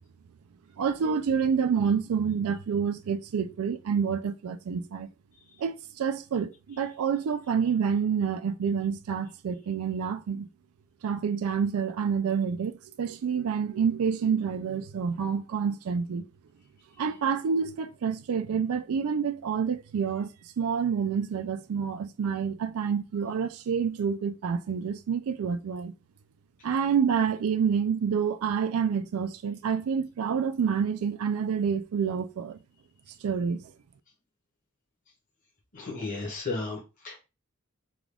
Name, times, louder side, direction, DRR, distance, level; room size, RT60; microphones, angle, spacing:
voice 1, 0.8-5.1 5.6-10.5 11.0-16.2 17.0-20.3 20.6-25.9 26.6-32.6 33.2-33.6, right 6 dB, 85° right, 0.4 m, -28 dB
voice 2, 35.7-37.2, left 3 dB, 40° left, 1.1 m, -34 dB
3.7 x 2.3 x 3.4 m
head